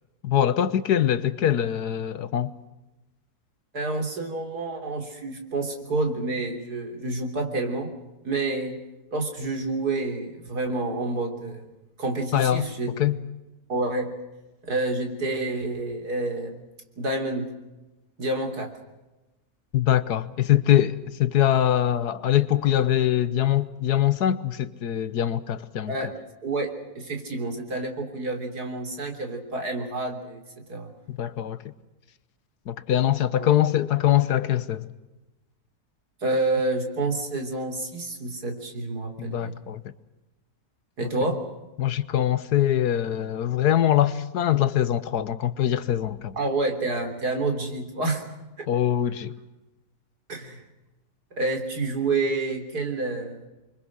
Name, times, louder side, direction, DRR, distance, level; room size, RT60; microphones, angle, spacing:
voice 1, 0.2-2.5 12.3-12.7 13.0-13.2 19.7-26.0 31.1-31.6 32.7-34.9 39.2-39.8 41.8-46.3 48.7-49.3, left 11 dB, 85° left, 1.6 m, -23 dB
voice 2, 3.7-7.9 8.2-8.8 9.1-11.6 12.0-12.9 13.7-14.1 14.6-16.6 17.0-17.5 18.2-18.7 25.9-26.1 26.4-30.4 30.7-30.9 33.4-33.5 36.2-39.6 41.0-41.4 46.3-48.2 48.6-48.7 50.3-50.6 51.3-53.4, right 2 dB, 85° right, 4.1 m, -28 dB
27.5 x 24.0 x 6.3 m
omnidirectional pair, 1.6 m